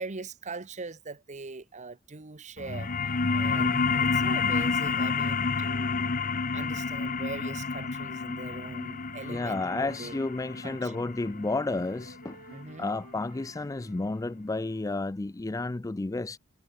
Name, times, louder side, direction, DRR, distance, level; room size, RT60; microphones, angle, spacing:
voice 1, 0.0-6.2 6.5-10.2 10.6-11.0 12.5-13.0, right 3 dB, 35° right, 1.0 m, -42 dB
sound 1, 2.6-13.7, left 4 dB, 40° left, 1.0 m, -30 dB
voice 2, 3.4-3.8 9.3-12.4 12.8-16.4, left 2 dB, 15° left, 0.4 m, -32 dB
Wind instrument woodwind instrument, 7.4-10.9 11.2-15.2, right 3 dB, 85° right, 6.7 m, -56 dB
head